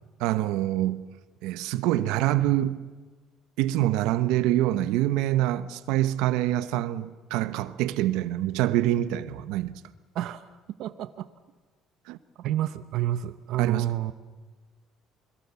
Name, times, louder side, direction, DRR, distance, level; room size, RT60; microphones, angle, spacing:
voice 1, 0.2-1.0 1.4-2.9 3.6-9.8 12.1-12.2 13.6-13.9, right 14 dB, 85° right, 1.1 m, -25 dB
voice 2, 10.1-10.5 10.8-11.3 12.4-14.1, right 12 dB, 65° right, 0.9 m, -29 dB
28.5 x 21.5 x 7.0 m
cardioid pair, 135°, 0 cm